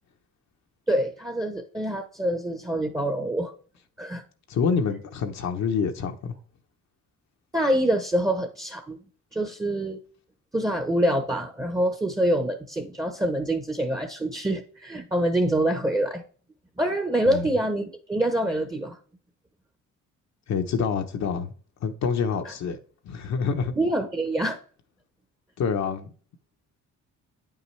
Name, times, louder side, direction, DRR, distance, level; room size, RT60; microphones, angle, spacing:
voice 1, 0.9-3.5 4.0-4.2 7.5-9.0 9.3-10.0 10.5-16.2 16.8-19.0 23.8-24.6, right 1 dB, 10° right, 0.9 m, -25 dB
voice 2, 4.5-6.4 17.3-17.5 20.5-21.5 21.8-22.8 23.0-23.7 25.6-26.1, left 6 dB, 65° left, 0.9 m, -27 dB
8.7 x 5.7 x 3.3 m
cardioid pair, 90°, 30 cm